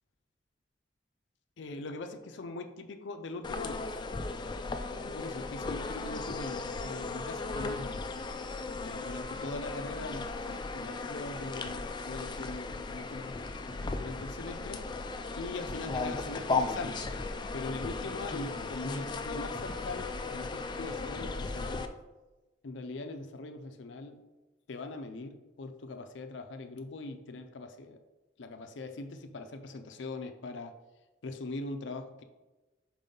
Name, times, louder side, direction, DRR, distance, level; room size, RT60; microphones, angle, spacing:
voice 1, 1.6-3.9 4.9-8.0 8.8-13.3 14.0-14.9 15.3-17.0 17.5-21.9 22.6-24.2 24.7-28.0 28.4-30.7 31.2-32.2, left 2 dB, 85° left, 6 dB, 0.5 m, -41 dB
sound 1, 3.4-21.8, left 3 dB, 25° left, 0.3 m, -36 dB
5.2 x 4.8 x 3.8 m, 1.1 s
head